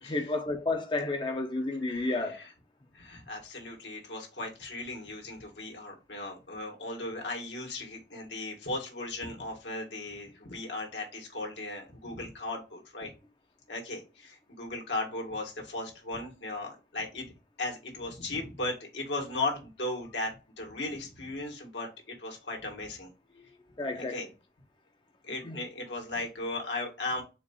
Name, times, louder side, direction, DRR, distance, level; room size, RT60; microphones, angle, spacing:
voice 1, 0.0-2.4 23.8-24.2 25.3-25.6, left 2 dB, 25° left, 0.5 m, -31 dB
voice 2, 1.8-2.5 2.9-13.1 13.7-23.1 23.9-24.3 25.3-27.2, left 2 dB, 75° left, 1.5 m, -37 dB
4.4 x 2.4 x 4.1 m
head